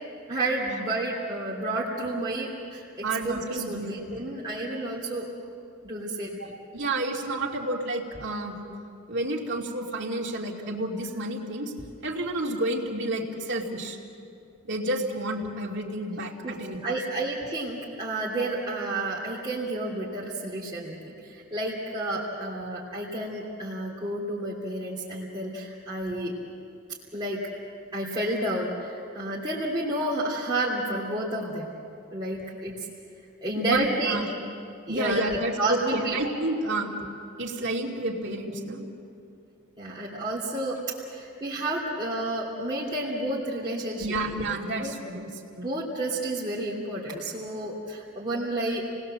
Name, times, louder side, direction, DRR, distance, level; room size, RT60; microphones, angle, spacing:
voice 1, 0.3-5.3 5.8-6.3 16.4-16.5 16.8-26.3 27.1-27.4 27.9-31.7 32.1-32.8 33.4-34.2 34.9-36.2 39.8-40.8 41.1-44.1 44.5-44.9 45.6-48.8, right 1 dB, 20° right, -7 dB, 3.0 m, -30 dB
voice 2, 3.0-4.3 6.4-8.6 9.1-11.7 12.0-14.0 14.7-16.8 33.6-34.3 34.9-36.9 37.4-38.8 44.0-46.0, right 1 dB, 60° right, -1 dB, 2.6 m, -30 dB
29.5 x 19.5 x 7.6 m, 2.4 s
head